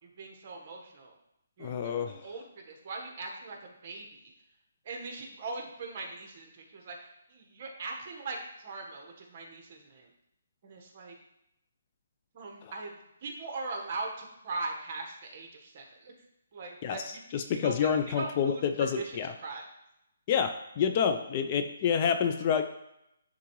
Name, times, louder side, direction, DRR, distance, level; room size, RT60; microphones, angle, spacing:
voice 1, 0.0-1.1 1.6-4.3 4.8-10.1 10.6-11.1 12.3-16.1 16.5-19.6, right 3 dB, 40° right, 2 dB, 1.2 m, -41 dB
voice 2, 1.6-2.2 12.6-12.7 16.8-19.3 20.3-22.6, left 7 dB, 30° left, 7 dB, 0.4 m, -28 dB
9.9 x 3.6 x 3.1 m, 0.84 s
hypercardioid pair, 160°, 0 cm